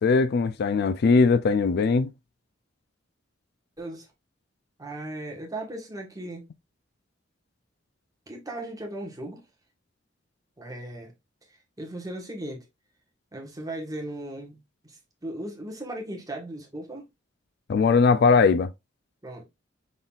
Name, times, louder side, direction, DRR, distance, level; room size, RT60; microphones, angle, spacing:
voice 1, 0.0-2.1 17.7-18.7, left 4 dB, 55° left, 0.3 m, -20 dB
voice 2, 4.8-6.5 8.3-9.4 10.6-11.1 11.5-12.7 13.3-14.6 14.8-17.1 19.2-19.5, right 1 dB, 20° right, 1.4 m, -37 dB
5.5 x 3.9 x 2.4 m
head